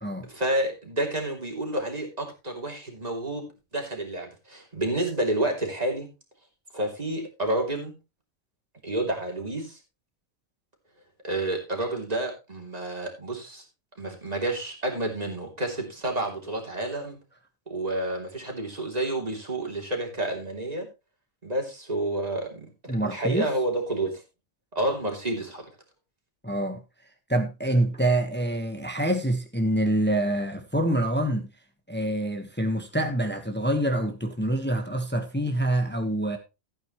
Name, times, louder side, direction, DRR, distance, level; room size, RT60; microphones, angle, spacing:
voice 1, 0.3-6.1 6.7-7.9 8.8-9.8 11.2-13.6 14.0-17.2 17.7-20.9 21.4-24.1 24.7-25.6, right 1 dB, 30° right, 3.2 m, -29 dB
voice 2, 22.9-23.5 26.4-26.8 27.3-31.5 31.9-36.4, right 1 dB, 10° left, 1.2 m, -26 dB
15.0 x 8.9 x 3.1 m
omnidirectional pair, 1.4 m